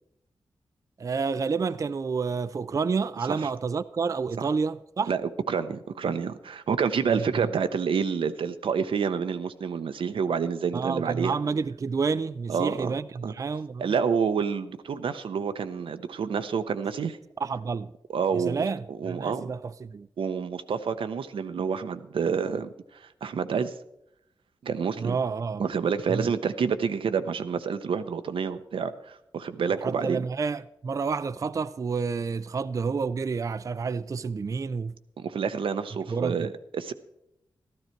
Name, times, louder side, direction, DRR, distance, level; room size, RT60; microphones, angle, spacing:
voice 1, 1.0-5.1 7.1-7.5 10.7-13.9 17.4-17.9 18.3-20.1 25.0-25.7 26.1-26.3 29.8-34.9 36.1-36.5, right 5 dB, 40° right, 0.4 m, -29 dB
voice 2, 5.1-11.4 12.5-12.9 13.2-13.3 13.8-17.2 18.1-19.5 20.2-23.7 24.6-25.2 25.6-30.2 35.2-36.9, right 6 dB, 85° right, 0.8 m, -28 dB
13.0 x 13.0 x 4.5 m
wide cardioid pair, 95°, 9 cm